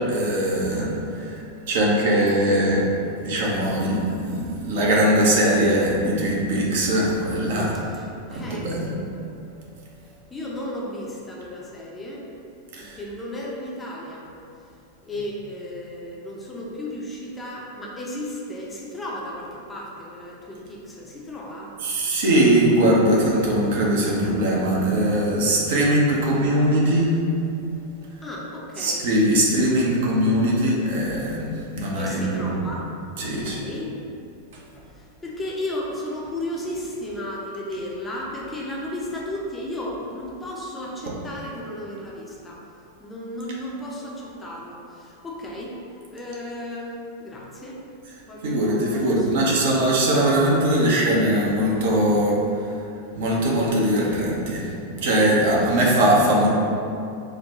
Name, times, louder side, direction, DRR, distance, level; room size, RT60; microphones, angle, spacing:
voice 1, 0.1-1.4 1.7-2.8 3.2-7.7 8.3-8.9 12.7-13.0 21.8-27.1 28.8-32.5 33.2-33.6 48.4-52.4 53.1-54.7 55.0-56.5, right 1 dB, 55° right, -4 dB, 0.6 m, -21 dB
voice 2, 7.8-8.7 10.3-12.3 12.8-14.3 15.0-21.7 28.2-29.1 31.9-32.9 33.2-33.9 34.8-42.6 43.0-45.8 46.1-47.8 48.3-49.9, left 1 dB, 15° left, -4 dB, 0.5 m, -34 dB
3.8 x 2.1 x 2.8 m, 2.6 s
figure-of-eight pair, 90°, 0 cm